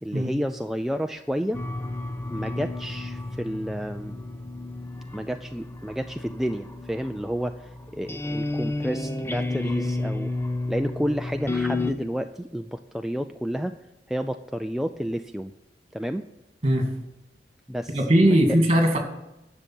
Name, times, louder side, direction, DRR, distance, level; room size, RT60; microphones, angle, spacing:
voice 1, 0.0-1.6 2.3-4.2 5.1-10.3 10.7-13.7 14.1-15.5 15.9-16.3 17.7-18.4, equal, ahead, 6 dB, 0.3 m, -30 dB
sound 1, 1.5-11.9, left 2 dB, 15° left, 0.7 m, -32 dB
voice 2, 17.9-19.0, right 1 dB, 35° right, 3 dB, 2.4 m, -19 dB
10.5 x 6.9 x 9.0 m, 0.94 s
head